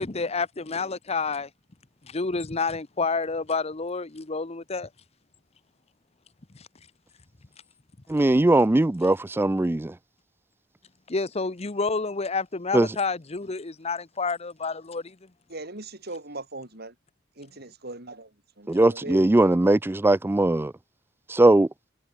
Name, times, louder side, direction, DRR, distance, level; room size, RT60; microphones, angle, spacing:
voice 1, 0.0-1.5 2.1-4.9 6.5-6.6 11.1-15.2, left 4 dB, 35° left, 0.9 m, -29 dB
voice 2, 8.1-9.9 12.7-12.9 18.7-20.7 21.3-21.7, right 2 dB, 10° right, 0.3 m, -20 dB
voice 3, 15.5-16.9 17.4-18.3 18.6-19.4, right 2 dB, 55° right, 5.7 m, -39 dB
head